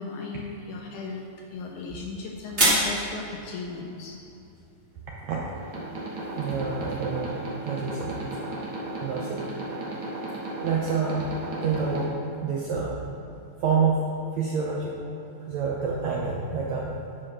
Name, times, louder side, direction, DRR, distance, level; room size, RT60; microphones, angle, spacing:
voice 1, 0.0-4.1, left 4 dB, 75° left, 0 dB, 1.9 m, -37 dB
sound 1, 1.0-6.9, right 1 dB, 30° right, 1.4 m, -31 dB
sound 2, 5.5-12.1, right 2 dB, 60° right, 1.4 m, -35 dB
voice 2, 6.4-8.2 9.0-9.4 10.6-11.3 11.6-12.1 12.4-13.0 13.6-14.1 14.3-15.0 15.5-16.9, right 5 dB, 75° right, -3 dB, 1.6 m, -27 dB
9.6 x 5.0 x 6.1 m, 2.7 s
omnidirectional pair, 4.1 m